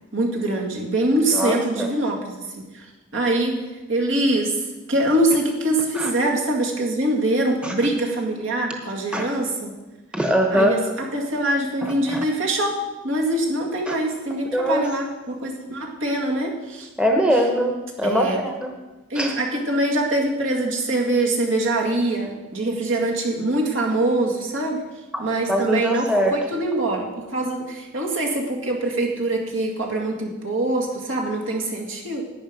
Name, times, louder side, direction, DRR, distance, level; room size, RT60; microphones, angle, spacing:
voice 1, 0.1-2.8 3.1-3.6 3.9-4.6 4.9-9.7 10.5-12.8 13.0-16.9 18.0-18.4 19.1-24.8 25.2-32.2, right 1 dB, 70° right, 0 dB, 2.1 m, -24 dB
voice 2, 1.3-1.9 6.0-6.1 7.6-7.7 9.1-9.2 10.1-10.7 12.1-12.2 13.9-14.0 14.5-14.8 17.0-18.5 19.1-19.3 25.1-26.3, equal, 5° right, 2 dB, 1.0 m, -22 dB
11.5 x 9.5 x 5.2 m, 1.1 s
head